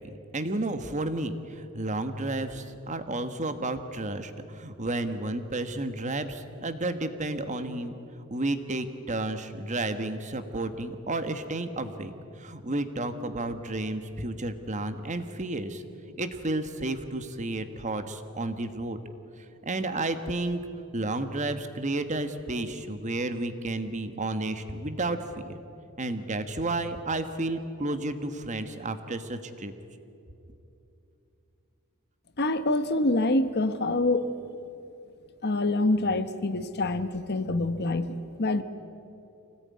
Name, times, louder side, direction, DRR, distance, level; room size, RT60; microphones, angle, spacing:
voice 1, 0.3-7.9 8.3-12.1 12.4-15.8 16.2-19.0 19.6-20.6 20.9-25.6 26.0-29.7, right 2 dB, 35° right, 9 dB, 1.3 m, -31 dB
voice 2, 32.4-34.3 35.4-38.6, left 2 dB, 50° left, 11 dB, 1.1 m, -26 dB
25.0 x 18.0 x 9.6 m, 2.8 s
head